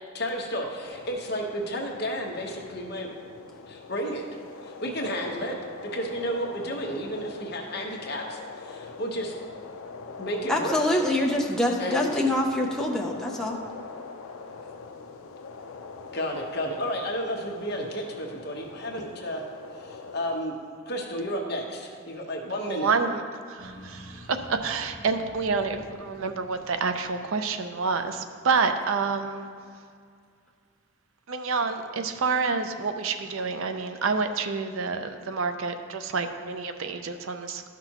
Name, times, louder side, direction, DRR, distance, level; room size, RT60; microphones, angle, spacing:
voice 1, 0.1-3.1 3.7-4.2 4.6-5.6 5.9-9.3 10.2-10.8 11.8-12.2 16.1-19.4 19.8-20.6 20.9-22.9, equal, 50° left, 0 dB, 1.1 m, -32 dB
sound 1, 0.8-20.4, left 4 dB, 80° left, 0.5 m, -43 dB
voice 2, 10.5-13.6, left 1 dB, 5° left, -1 dB, 0.5 m, -25 dB
voice 3, 22.7-23.2 23.5-23.6 24.6-29.5 31.3-37.6, right 4 dB, 75° right, 8 dB, 0.5 m, -28 dB
sound 2, 23.6-27.7, equal, 25° left, 1.2 m, -48 dB
11.5 x 6.0 x 2.9 m, 2.1 s
head